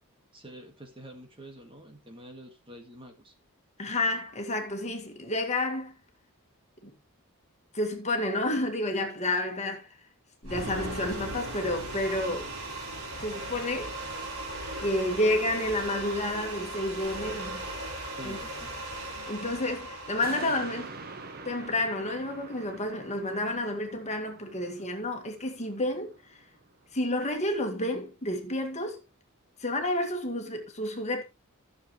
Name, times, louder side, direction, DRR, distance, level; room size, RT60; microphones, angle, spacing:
voice 1, 0.3-3.3 18.2-18.7, equal, 25° right, 1.8 m, -47 dB
voice 2, 3.8-6.0 6.8-6.9 7.7-9.9 10.4-12.5 13.2-14.0 14.8-17.7 18.2-18.4 19.2-20.9 21.5-26.4 26.9-29.0 29.6-31.2, left 1 dB, 30° left, 2.0 m, -30 dB
sound 1, 10.4-22.6, right 1 dB, 80° right, 4.5 m, -38 dB
sound 2, 20.2-26.9 27.3-27.4, right 4 dB, 45° right, 1.1 m, -46 dB
14.0 x 7.0 x 3.2 m
head